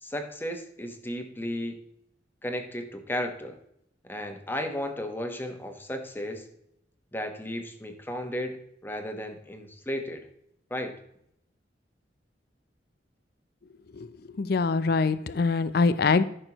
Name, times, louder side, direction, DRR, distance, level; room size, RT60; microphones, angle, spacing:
voice 1, 0.0-1.8 2.4-3.6 4.1-6.5 7.1-10.3 10.7-11.0, equal, 10° left, 5 dB, 1.1 m, -34 dB
voice 2, 14.4-16.2, left 4 dB, 60° left, 14 dB, 0.5 m, -23 dB
13.5 x 6.3 x 3.0 m, 0.74 s
head